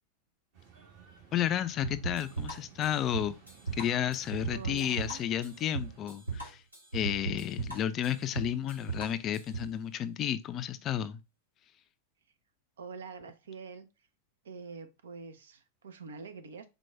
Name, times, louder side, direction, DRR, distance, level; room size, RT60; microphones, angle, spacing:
sound 1, 0.5-6.1, right 6 dB, 45° right, 1.4 m, -56 dB
voice 1, 1.3-3.4 3.8-6.6 6.9-11.2, left 10 dB, 30° left, 0.3 m, -32 dB
sound 2, 1.8-9.7, right 5 dB, 80° right, 1.5 m, -38 dB
voice 2, 4.5-5.2 12.8-14.1 14.4-16.7, right 5 dB, 65° right, 0.5 m, -45 dB
4.4 x 2.2 x 4.3 m
figure-of-eight pair, 90°, 0 cm